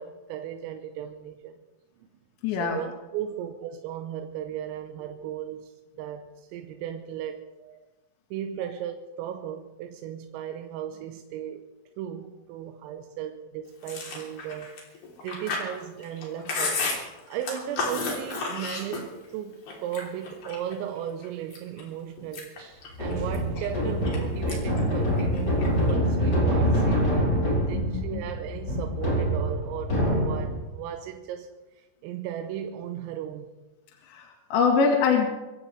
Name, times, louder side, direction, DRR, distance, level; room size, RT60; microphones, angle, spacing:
voice 1, 0.0-1.6 2.6-7.8 8.3-11.7 12.0-14.8 15.2-16.9 17.3-31.5 32.0-33.5, right 10 dB, 90° right, 5 dB, 3.6 m, -36 dB
voice 2, 2.4-2.8 27.7-28.2 34.1-35.3, left 5 dB, 70° left, 1 dB, 3.7 m, -24 dB
Chewing mastication, 13.8-19.3 19.7-20.7 21.2-21.8 22.2-24.2 24.5-24.8 25.1-25.9, left 4 dB, 50° left, 4.9 m, -32 dB
sound 1, 22.9-30.7, equal, 20° left, 4.1 m, -25 dB
25.5 x 16.0 x 3.4 m, 1.1 s
omnidirectional pair, 5.9 m